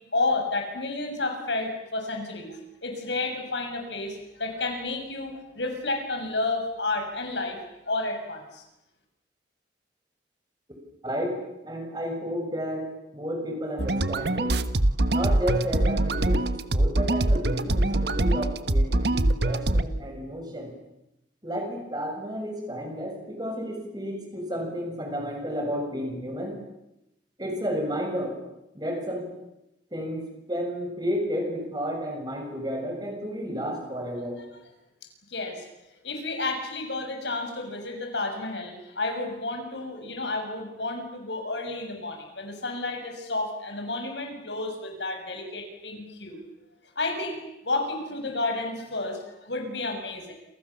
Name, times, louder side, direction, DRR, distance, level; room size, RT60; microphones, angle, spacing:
voice 1, 0.1-7.6 7.9-8.6 35.3-35.6 36.0-46.4 47.0-50.3, left 2 dB, 75° left, 4 dB, 7.1 m, -31 dB
voice 2, 11.0-14.6 15.1-20.7 21.4-26.6 27.4-28.4 28.7-29.3 29.9-34.4, equal, 20° right, 2 dB, 7.1 m, -32 dB
sound 1, 13.8-19.8, right 1 dB, 65° right, 1.3 m, -23 dB
28.5 x 28.0 x 7.3 m, 0.90 s
head